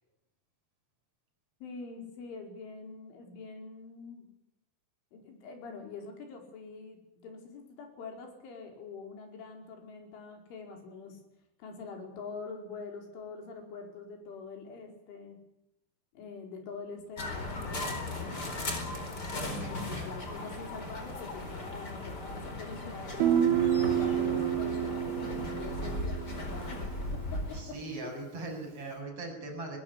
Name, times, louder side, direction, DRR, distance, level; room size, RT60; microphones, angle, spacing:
voice 1, 1.6-4.3 5.1-11.2 11.6-15.4 16.2-18.6 19.1-26.8 27.1-28.1, left 4 dB, 70° left, 3 dB, 7.1 m, -45 dB
sound 1, 17.2-27.6, left 2 dB, 20° left, 4.0 m, -37 dB
voice 2, 19.1-20.1 27.5-29.8, right 2 dB, 30° right, 1 dB, 8.3 m, -41 dB
Guitar, 23.2-26.8, right 10 dB, 70° right, 3.9 m, -29 dB
21.0 x 20.5 x 10.0 m, 0.85 s
omnidirectional pair, 5.9 m